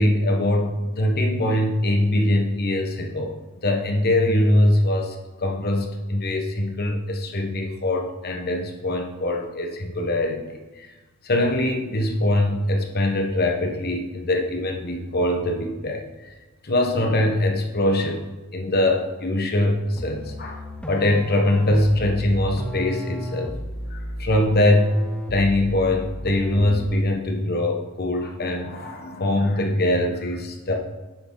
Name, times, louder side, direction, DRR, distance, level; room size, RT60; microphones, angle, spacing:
voice 1, 0.0-3.4 3.6-10.9 11.2-16.3 16.6-18.2 18.5-23.5 23.9-25.0 25.3-30.7, left 1 dB, 45° left, 3 dB, 1.2 m, -22 dB
sound 1, 20.0-27.1, equal, 5° left, 0.6 m, -33 dB
9.1 x 6.2 x 4.0 m, 1.2 s
head